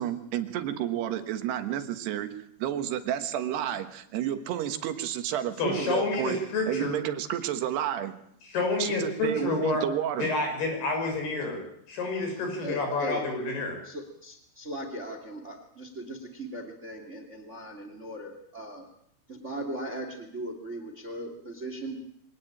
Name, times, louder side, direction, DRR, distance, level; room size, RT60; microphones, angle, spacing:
voice 1, 0.0-2.4 2.6-6.4 6.7-8.2 8.8-10.3, right 11 dB, 85° right, 9 dB, 3.5 m, -30 dB
voice 2, 5.6-7.0 8.4-9.8 10.2-11.6 11.9-13.8, left 3 dB, 75° left, 3 dB, 8.2 m, -29 dB
voice 3, 12.6-13.3 13.8-18.9 19.3-22.0, right 1 dB, 20° right, 6 dB, 2.2 m, -38 dB
24.0 x 18.0 x 9.0 m, 0.73 s
omnidirectional pair, 4.6 m